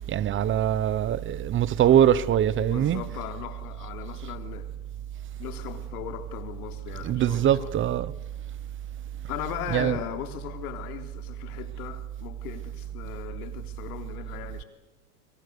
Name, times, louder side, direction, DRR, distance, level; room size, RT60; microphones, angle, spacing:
voice 1, 0.1-3.0 7.0-8.1 9.7-10.0, right 10 dB, 25° right, 0.9 m, -22 dB
voice 2, 2.6-4.7 5.4-7.7 9.3-14.6, left 11 dB, 70° left, 3.5 m, -38 dB
26.0 x 25.0 x 6.9 m
supercardioid pair, 120°, 46 cm